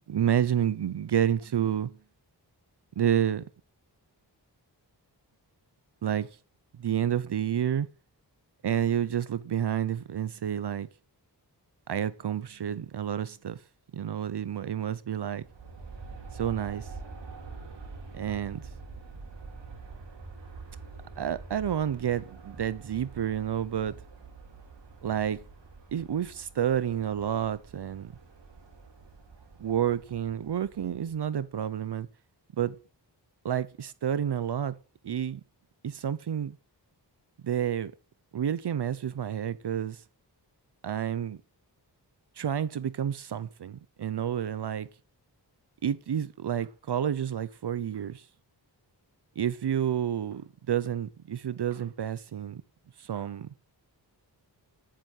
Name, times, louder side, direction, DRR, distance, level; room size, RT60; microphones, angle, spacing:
voice 1, 0.0-2.0 3.0-3.4 6.0-6.3 6.7-7.9 8.6-10.9 11.9-13.6 13.9-15.5 16.3-16.9 18.1-18.7 21.2-23.9 25.0-25.4 25.9-28.1 29.6-32.1 32.6-32.8 33.4-34.7 35.0-35.4 35.8-36.6 37.4-37.9 38.3-40.0 40.8-41.4 42.4-44.9 45.8-48.2 49.4-52.6 53.0-53.5, right 9 dB, 70° right, 0.7 m, -29 dB
Aircraft, 15.4-31.4, right 4 dB, 85° right, 2.6 m, -46 dB
10.5 x 7.6 x 6.5 m
wide cardioid pair, 80°, 42 cm